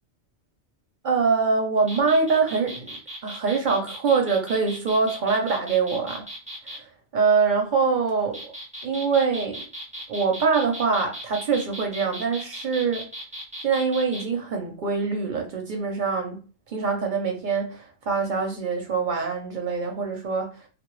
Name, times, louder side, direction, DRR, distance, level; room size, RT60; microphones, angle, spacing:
voice 1, 1.0-6.2 6.7-6.8 7.1-8.5 8.8-9.7 10.1-13.1 13.6-16.4 16.7-20.5, right 5 dB, 55° right, 0.6 m, -24 dB
sound 1, 1.8-6.8 8.1-14.3, equal, 10° right, 0.5 m, -38 dB
2.2 x 2.0 x 3.0 m
omnidirectional pair, 1.2 m